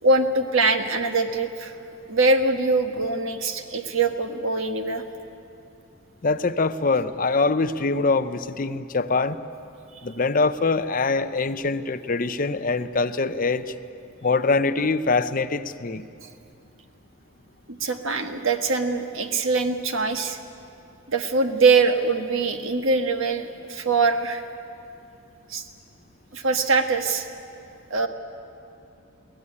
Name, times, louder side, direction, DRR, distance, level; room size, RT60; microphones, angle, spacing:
voice 1, 0.0-1.7 2.1-5.0 17.7-20.4 21.1-24.4 25.5-25.6 26.3-27.3 27.9-28.1, right 3 dB, 70° right, 6 dB, 1.4 m, -23 dB
voice 2, 6.2-9.4 10.0-13.7 14.2-16.0, left 3 dB, 40° left, 11 dB, 0.7 m, -23 dB
22.0 x 17.0 x 9.8 m, 2.6 s
head